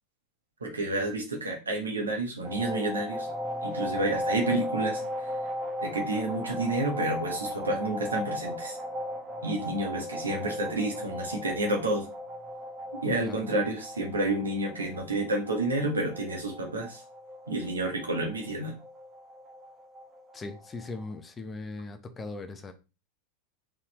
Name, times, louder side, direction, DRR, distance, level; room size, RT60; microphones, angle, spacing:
voice 1, 0.6-3.3 3.6-5.0 5.8-8.8 9.4-12.1 13.0-17.0 17.5-18.7, right 2 dB, 75° right, 1 dB, 1.4 m, -30 dB
sound 1, 2.4-21.0, equal, 25° right, 0.9 m, -36 dB
voice 2, 20.3-22.7, left 3 dB, 20° left, 8 dB, 0.8 m, -39 dB
4.3 x 3.7 x 3.1 m, 0.30 s
figure-of-eight pair, 90°, 0 cm